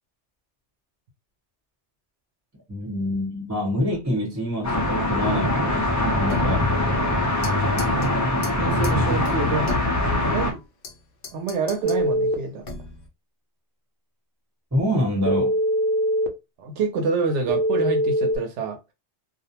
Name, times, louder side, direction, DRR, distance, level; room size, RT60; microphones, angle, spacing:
voice 1, 2.7-7.1 14.7-15.6, left 1 dB, 15° right, 0.9 m, -26 dB
sound 1, 4.6-10.5, left 1 dB, 20° left, 0.5 m, -23 dB
sound 2, 6.3-7.5 7.8-8.1 8.4-8.5 8.8-8.9 9.2-10.9 11.2-12.0 12.6-13.1, left 3 dB, 55° left, 0.8 m, -32 dB
voice 2, 8.6-9.7 10.2-10.6 11.3-12.7 16.6-18.8, right 4 dB, 85° right, 0.9 m, -27 dB
Telephone, 11.8-12.3 15.3-16.3 17.5-18.4, right 1 dB, 60° right, 0.7 m, -22 dB
2.4 x 2.1 x 2.8 m
omnidirectional pair, 1.2 m